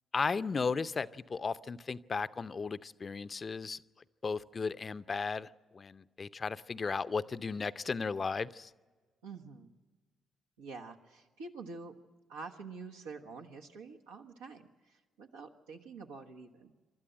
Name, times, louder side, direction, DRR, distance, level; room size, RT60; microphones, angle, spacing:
voice 1, 0.1-3.8 4.2-8.7, left 4 dB, 40° left, 14 dB, 0.6 m, -35 dB
voice 2, 9.2-9.7 10.6-11.9 12.3-16.7, right 4 dB, 80° right, 0 dB, 1.3 m, -47 dB
28.0 x 13.0 x 7.7 m, 1.4 s
hypercardioid pair, 40°, 0 cm